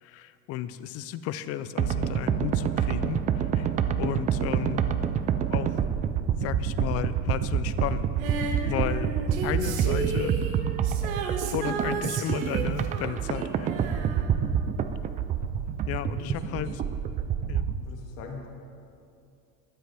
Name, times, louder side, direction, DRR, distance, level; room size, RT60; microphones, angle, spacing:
voice 1, 0.0-3.7 4.0-4.8 5.5-5.8 6.4-8.1 8.6-9.1 9.4-10.3 10.7-10.9 11.5-13.7 15.9-16.7 17.5-17.7, left 11 dB, 40° left, 14 dB, 0.5 m, -33 dB
sound 1, 1.8-17.8, right 8 dB, 20° right, 0.3 m, -27 dB
Female singing, 8.2-15.2 16.3-16.4, right 4 dB, 75° right, 1.7 m, -34 dB
voice 2, 15.8-16.8 17.8-18.5, left 5 dB, 70° left, 1 dB, 2.0 m, -41 dB
22.5 x 7.7 x 3.4 m, 2.5 s
supercardioid pair, 130°, 40 cm